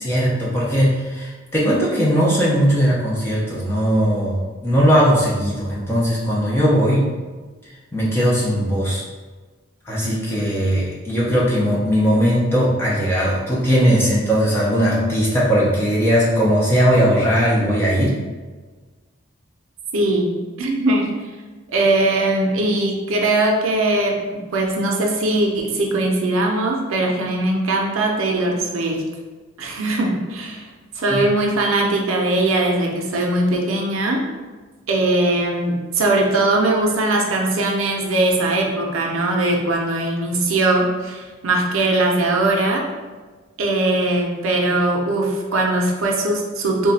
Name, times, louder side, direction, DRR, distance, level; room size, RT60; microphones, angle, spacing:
voice 1, 0.0-7.1 7.9-9.0 9.9-18.2 31.1-31.2, equal, 10° left, -6 dB, 0.6 m, -18 dB
voice 2, 19.9-21.2 21.7-29.1 29.6-30.7 31.0-34.3 34.9-42.8 43.6-46.9, right 2 dB, 75° right, 0 dB, 0.5 m, -20 dB
3.2 x 2.2 x 4.0 m, 1.3 s
head